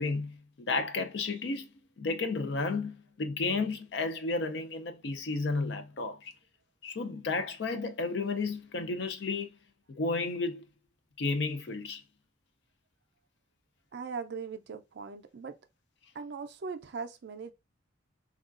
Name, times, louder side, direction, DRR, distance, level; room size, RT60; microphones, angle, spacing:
voice 1, 0.0-1.7 2.0-6.3 6.8-9.5 10.0-10.6 11.2-12.0, left 3 dB, 60° left, 0.4 m, -32 dB
voice 2, 13.9-15.5 16.1-17.5, right 5 dB, 55° right, 0.4 m, -39 dB
3.5 x 2.3 x 2.4 m
head